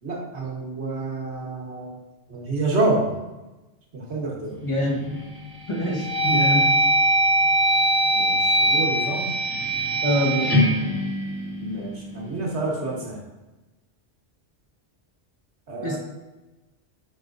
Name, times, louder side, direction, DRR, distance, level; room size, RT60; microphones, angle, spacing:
voice 1, 0.0-2.0 2.3-3.1 3.9-4.6 8.1-9.3 11.6-13.2 15.7-16.0, right 2 dB, 70° right, -2 dB, 1.6 m, -28 dB
voice 2, 4.6-5.0 5.7-6.8 10.0-10.5 15.8-16.0, equal, 30° left, -2 dB, 1.2 m, -24 dB
sound 1, 4.8-5.2 5.7-11.9, right 1 dB, 10° right, 1.2 m, -22 dB
7.8 x 5.0 x 2.6 m, 1.1 s
omnidirectional pair, 1.2 m